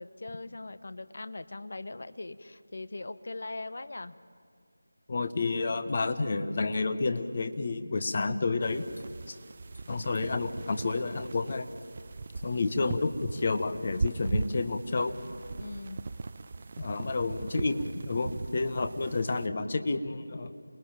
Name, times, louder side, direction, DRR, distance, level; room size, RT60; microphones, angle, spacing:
voice 1, 0.0-4.2 7.9-8.3 15.6-16.1, left 2 dB, 55° left, 13 dB, 1.1 m, -41 dB
voice 2, 5.1-8.9 9.3-9.4 9.9-11.7 12.4-15.2 16.8-20.5, left 3 dB, 35° left, 9 dB, 1.4 m, -30 dB
sound 1, 5.3-5.4 5.9-6.0 6.7-6.9 7.1-7.3 8.2-8.3 9.0-9.2 9.7-10.2 10.8-10.9 11.3-11.5 11.8-11.9 12.3-12.7, left 1 dB, 75° left, 6.5 m, -58 dB
sound 2, 8.6-19.5, right 3 dB, 35° right, 0.6 m, -39 dB
28.5 x 21.0 x 9.0 m, 2.2 s
figure-of-eight pair, 165°, 0 cm